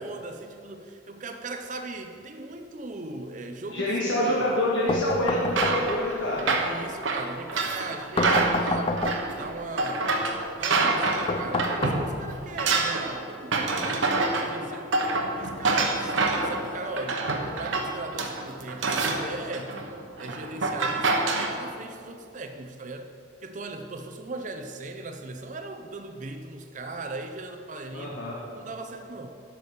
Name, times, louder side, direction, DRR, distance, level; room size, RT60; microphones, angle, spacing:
voice 1, 0.0-4.3 6.5-9.1 9.4-10.1 10.6-14.9 15.3-19.7 20.2-23.1 23.4-28.2 28.5-29.3, right 2 dB, 40° right, 6 dB, 0.6 m, -38 dB
voice 2, 3.7-6.5 27.9-28.4, left 1 dB, 75° left, -5 dB, 1.6 m, -26 dB
sound 1, 4.9-6.2 8.2-9.5 11.3-12.5, left 2 dB, 25° left, 0.4 m, -29 dB
sound 2, 5.5-12.1 12.3-21.5, right 3 dB, 75° right, 1.0 m, -26 dB
10.5 x 6.1 x 6.4 m, 2.5 s
head